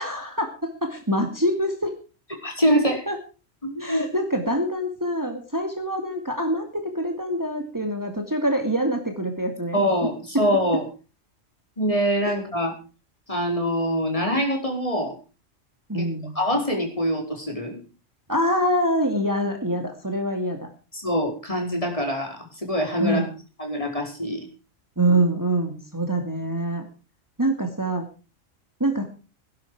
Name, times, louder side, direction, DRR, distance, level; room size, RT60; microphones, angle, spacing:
voice 1, 0.0-1.9 2.8-3.2 3.8-9.8 10.3-10.4 12.3-12.4 15.9-16.3 18.3-20.7 23.0-23.3 25.0-26.9 27.4-28.0 28.8-29.0, right 1 dB, 15° right, 4 dB, 2.5 m, -25 dB
voice 2, 2.4-3.0 3.6-4.0 9.7-10.8 11.8-12.7 13.3-15.1 15.9-16.1 16.3-17.8 20.9-23.2 23.6-24.5, equal, 25° left, 2 dB, 5.0 m, -24 dB
18.0 x 11.5 x 4.9 m, 0.34 s
omnidirectional pair, 1.3 m